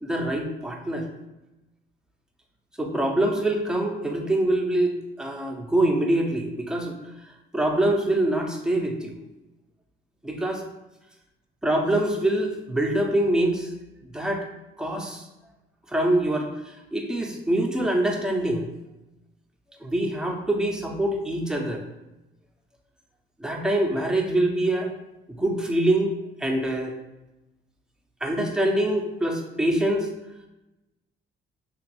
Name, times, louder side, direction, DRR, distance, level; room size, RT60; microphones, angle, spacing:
voice 1, 0.0-1.1 2.8-7.0 7.2-9.2 10.2-10.6 11.6-13.7 14.1-14.4 14.8-15.3 15.9-18.7 19.8-21.8 23.4-24.9 25.4-26.1 26.4-26.9 28.2-30.1, right 1 dB, 5° right, 1 dB, 0.5 m, -24 dB
3.0 x 2.9 x 3.0 m, 0.97 s
cardioid pair, 90°, 20 cm